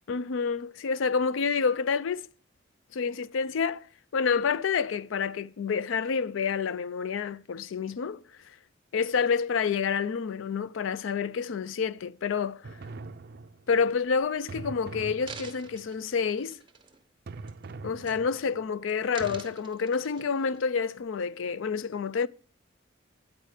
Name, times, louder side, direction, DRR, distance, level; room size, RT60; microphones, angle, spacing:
voice 1, 0.1-2.3 2.9-3.9 4.1-8.2 8.9-12.6 13.7-16.6 17.8-22.3, left 5 dB, 75° left, 0.4 m, -28 dB
sound 1, 12.6-13.8 14.5-15.9 17.3-18.6 19.2-19.4, right 3 dB, 55° right, 0.5 m, -43 dB
sound 2, 14.2-14.4 15.0-17.1 17.5-17.7 18.0-18.6 18.9-20.6 21.2-21.3, right 5 dB, 25° right, 1.2 m, -48 dB
9.1 x 5.0 x 6.4 m
head